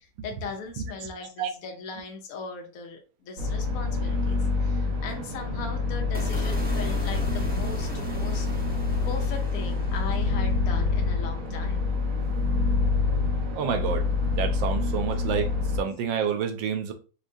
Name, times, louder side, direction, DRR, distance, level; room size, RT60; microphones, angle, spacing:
voice 1, 0.2-8.5 9.1-11.9, left 4 dB, 70° left, 0.8 m, -38 dB
sound 1, 3.4-15.8, left 4 dB, 55° right, 1.0 m, -26 dB
sound 2, 6.1-12.4, right 1 dB, 15° right, 0.3 m, -37 dB
voice 2, 13.5-14.1 14.3-16.9, right 7 dB, 80° right, 1.3 m, -29 dB
4.4 x 2.3 x 2.6 m
omnidirectional pair, 2.1 m